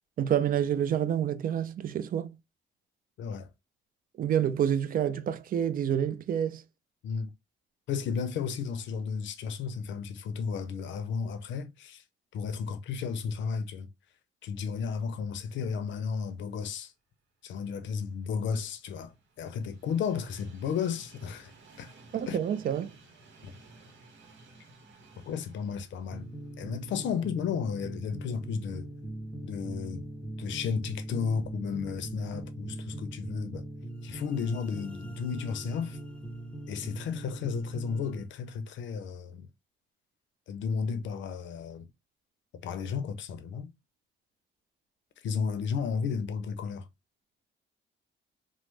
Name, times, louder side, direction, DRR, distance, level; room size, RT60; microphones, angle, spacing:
voice 1, 0.2-2.4 4.2-6.6 22.1-23.0, right 9 dB, 45° right, 0.4 m, -28 dB
voice 2, 3.2-3.5 7.0-7.3 7.9-12.0 12.3-13.9 14.4-16.9 17.4-21.5 21.8-21.9 22.3-22.4 23.4-23.5 25.3-26.3 26.6-28.9 29.4-30.0 30.4-33.6 34.0-36.0 36.7-39.5 40.5-41.9 42.6-43.7 45.2-46.9, left 6 dB, 70° left, 0.5 m, -33 dB
Train, 17.8-27.9 28.4-28.5 29.6-29.7, right 3 dB, 70° right, 0.9 m, -56 dB
sound 1, 26.1-38.3, right 1 dB, 5° left, 0.6 m, -41 dB
3.1 x 2.0 x 3.1 m
cardioid pair, 90°, 20 cm